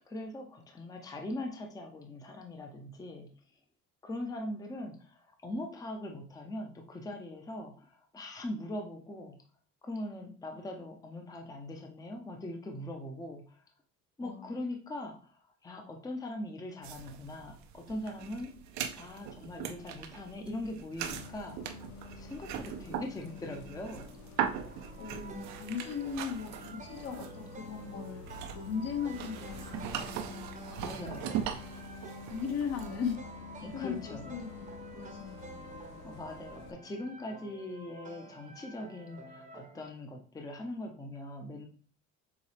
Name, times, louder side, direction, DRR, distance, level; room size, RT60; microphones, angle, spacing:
voice 1, 0.0-3.3 4.0-9.4 9.8-13.6 14.2-18.5 19.0-21.8 22.1-24.1 30.8-31.4 33.6-34.3 36.0-41.7, left 1 dB, 10° left, 3 dB, 0.6 m, -41 dB
sound 1, 16.8-33.2, right 9 dB, 65° right, 0.6 m, -40 dB
Bus, 21.1-36.7, left 5 dB, 90° left, 0.6 m, -49 dB
sound 2, 24.5-39.8, right 4 dB, 25° right, 0.8 m, -50 dB
voice 2, 25.0-31.4 32.3-33.2 33.7-36.0, left 6 dB, 55° left, 5 dB, 1.1 m, -38 dB
6.9 x 2.3 x 3.3 m, 0.42 s
cardioid pair, 120°, 30 cm